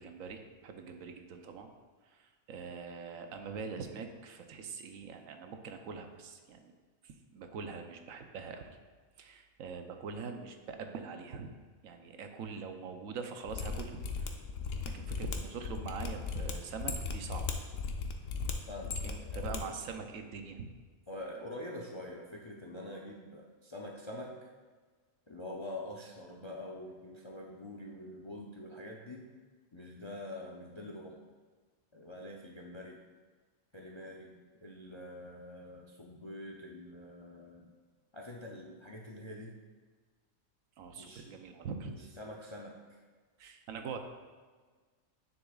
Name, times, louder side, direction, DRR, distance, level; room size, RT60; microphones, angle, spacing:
voice 1, 0.0-1.7 2.1-6.7 7.0-8.7 9.2-11.6 11.8-14.3 14.8-17.5 19.0-20.7 40.8-41.9 43.4-44.0, right 5 dB, 90° right, 6 dB, 1.1 m, -43 dB
Mechanisms, 13.5-19.6 19.8-19.9, left 5 dB, 75° left, 1.0 m, -37 dB
voice 2, 18.7-19.8 21.1-24.5 25.3-29.3 29.7-31.2 31.9-33.0 33.7-37.7 38.1-39.6 40.9-41.3 41.9-43.0, left 1 dB, 45° left, -1 dB, 0.3 m, -45 dB
9.2 x 6.8 x 2.4 m, 1.4 s
omnidirectional pair, 1.4 m